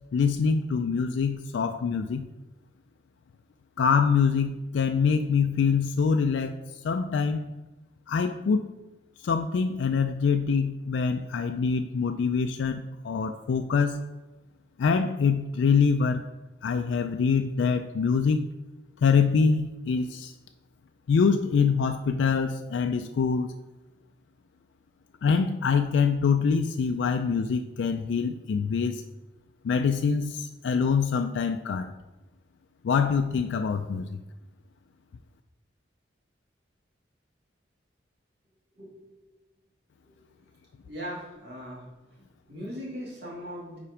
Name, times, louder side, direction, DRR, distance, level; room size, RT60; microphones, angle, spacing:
voice 1, 0.1-2.3 3.8-6.5 6.8-7.5 8.1-8.7 9.2-14.0 14.8-16.2 16.6-18.5 19.0-20.3 21.1-23.5 25.2-29.0 29.6-31.9 32.8-34.2, left 5 dB, 75° left, 7 dB, 0.3 m, -25 dB
voice 2, 38.7-39.3 40.1-40.2 40.8-41.9 42.5-43.8, equal, 60° right, -6 dB, 2.1 m, -39 dB
5.7 x 4.4 x 4.9 m, 1.1 s
head